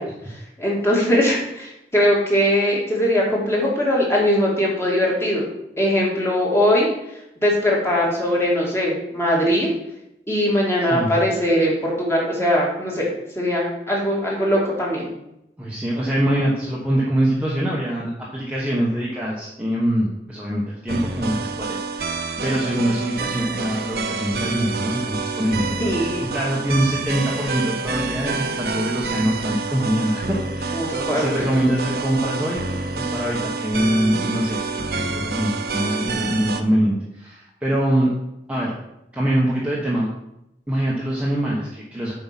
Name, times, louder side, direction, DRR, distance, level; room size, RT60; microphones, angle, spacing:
voice 1, 0.0-5.5 5.8-6.9 7.4-9.7 10.3-13.1 13.4-15.1 25.8-26.3 30.7-31.4, equal, 15° left, -4 dB, 2.1 m, -21 dB
voice 2, 15.6-25.8 26.3-38.1 38.5-38.8 39.1-40.1 40.7-42.1, right 1 dB, 5° right, -5 dB, 1.1 m, -24 dB
sound 1, 20.9-36.6, right 4 dB, 60° right, 0.7 m, -28 dB
7.7 x 4.8 x 5.7 m, 0.86 s
head